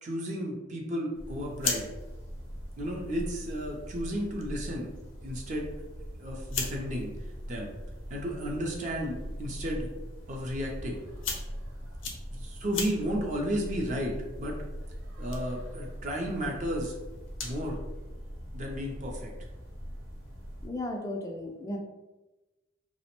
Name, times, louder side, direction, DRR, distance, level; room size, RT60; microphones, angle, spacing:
voice 1, 0.0-1.9 2.8-4.9 5.2-5.7 6.2-7.1 7.5-7.7 8.1-9.9 10.3-11.0 12.3-14.6 15.2-17.0 17.4-17.8 18.5-19.3, equal, 40° right, 0 dB, 0.5 m, -33 dB
sound 1, 1.1-20.7, equal, 90° right, 0.9 m, -41 dB
sound 2, 1.3-17.7, left 5 dB, 85° left, 0.5 m, -42 dB
voice 2, 20.6-21.8, left 1 dB, 20° left, 2 dB, 0.3 m, -35 dB
2.9 x 2.0 x 2.9 m, 1.1 s
head